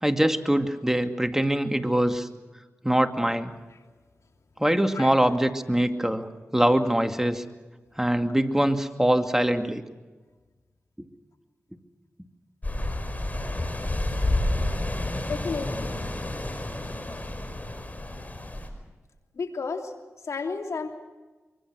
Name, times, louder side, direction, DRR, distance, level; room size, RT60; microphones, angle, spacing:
voice 1, 0.0-2.3 2.8-3.5 4.6-6.3 6.5-7.4 8.0-9.8, right 1 dB, 10° right, 7 dB, 2.3 m, -23 dB
sound 1, 12.6-18.7, left 1 dB, 30° left, 5.2 m, -30 dB
voice 2, 15.2-16.0 19.4-19.9 20.2-21.0, left 4 dB, 80° left, 4 dB, 3.1 m, -32 dB
25.0 x 24.0 x 6.3 m, 1.3 s
cardioid pair, 45°, 5 cm